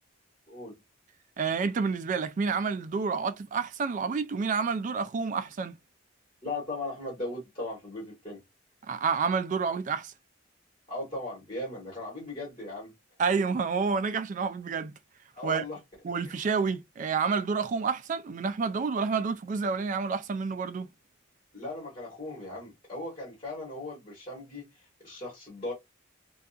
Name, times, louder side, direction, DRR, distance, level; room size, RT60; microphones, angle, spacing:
voice 1, 0.5-0.8 6.4-8.4 10.9-12.9 15.3-15.8 21.5-24.6 25.0-25.7, left 2 dB, 25° left, 1.3 m, -37 dB
voice 2, 1.4-5.8 8.9-10.1 13.2-15.0 15.4-15.6 16.0-20.9, right 5 dB, 40° right, 0.3 m, -29 dB
2.6 x 2.3 x 2.4 m
head